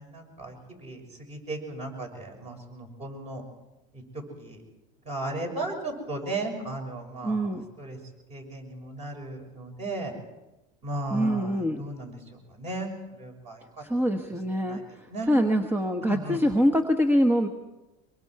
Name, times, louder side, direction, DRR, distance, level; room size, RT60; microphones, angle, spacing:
voice 1, 0.0-3.4 3.9-4.6 5.0-7.5 7.8-8.0 8.3-10.1 10.8-12.9 13.2-13.6 14.6-14.8 15.1-15.3 16.1-16.4, right 2 dB, 30° right, 3 dB, 6.4 m, -36 dB
voice 2, 7.2-7.6 11.1-11.8 13.8-17.5, equal, 10° right, 4 dB, 1.1 m, -24 dB
24.0 x 23.5 x 4.8 m, 1.0 s
supercardioid pair, 135°, 20 cm